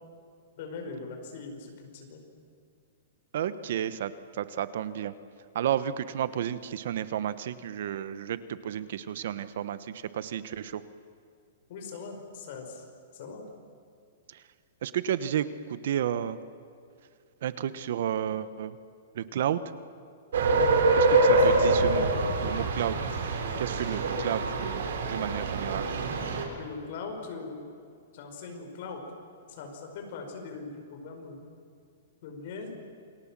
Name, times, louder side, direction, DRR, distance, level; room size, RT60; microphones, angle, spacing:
voice 1, 0.6-2.2 11.7-12.8 13.1-13.4 26.6-27.7 28.1-29.0 29.5-31.4 32.2-32.7, left 4 dB, 45° left, 3 dB, 5.2 m, -40 dB
voice 2, 3.3-5.1 5.5-10.8 14.3-14.4 14.8-16.4 17.4-18.8 19.1-19.6 20.9-22.1 22.4-23.0 23.6-25.9, right 10 dB, 55° right, 14 dB, 1.0 m, -32 dB
sound 1, 20.3-26.4, right 2 dB, 75° right, 4.4 m, -25 dB
28.5 x 22.5 x 7.5 m, 2.4 s
hypercardioid pair, 170°, 0 cm